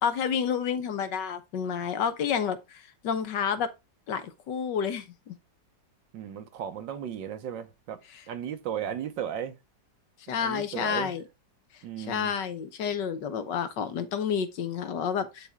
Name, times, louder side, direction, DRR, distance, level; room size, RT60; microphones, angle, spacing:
voice 1, 0.0-3.7 4.1-5.4 10.3-11.2 12.1-15.5, left 7 dB, 70° left, 1.6 m, -30 dB
voice 2, 6.1-9.6 10.4-11.1 11.8-12.3, right 9 dB, 80° right, 1.7 m, -35 dB
9.7 x 4.3 x 3.6 m
omnidirectional pair, 2.0 m